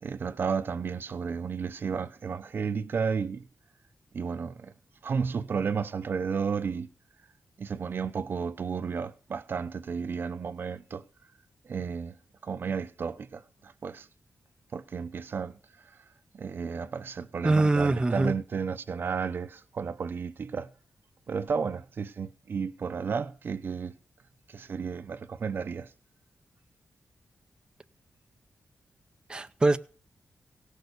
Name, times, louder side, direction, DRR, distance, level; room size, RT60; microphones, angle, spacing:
voice 1, 0.0-3.4 4.1-4.7 5.0-6.9 7.6-11.0 11.7-12.2 12.4-14.1 14.7-15.6 16.3-20.7 21.3-23.9 24.5-25.9, right 6 dB, 60° right, 0.8 m, -32 dB
voice 2, 17.4-18.3 29.3-29.8, right 2 dB, 20° right, 0.5 m, -23 dB
17.5 x 6.5 x 6.6 m
wide cardioid pair, 110°, 4 cm